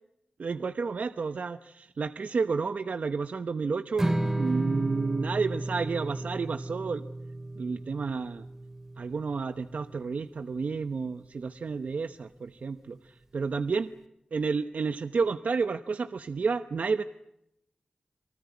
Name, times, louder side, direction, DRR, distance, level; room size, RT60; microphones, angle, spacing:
voice 1, 0.4-7.0 7.6-8.5 9.0-13.9 14.3-17.0, right 4 dB, 70° right, 10 dB, 1.0 m, -31 dB
Strum, 4.0-10.2, right 1 dB, 15° right, 3.3 m, -33 dB
27.5 x 19.5 x 9.6 m, 0.82 s
wide cardioid pair, 70°, 3 cm